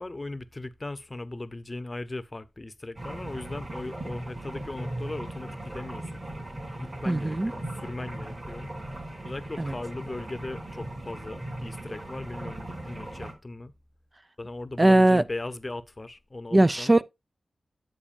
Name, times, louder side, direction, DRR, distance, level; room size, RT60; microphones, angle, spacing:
voice 1, 0.0-6.2 6.8-8.7 9.2-13.7 14.4-16.9, left 2 dB, 30° left, 0.7 m, -38 dB
sound 1, 3.0-13.3, right 1 dB, 45° right, 3.4 m, -38 dB
voice 2, 7.1-7.5 9.6-9.7 14.8-15.2 16.5-17.0, right 1 dB, 30° right, 0.4 m, -20 dB
8.7 x 7.8 x 2.5 m
cardioid pair, 50°, 0 cm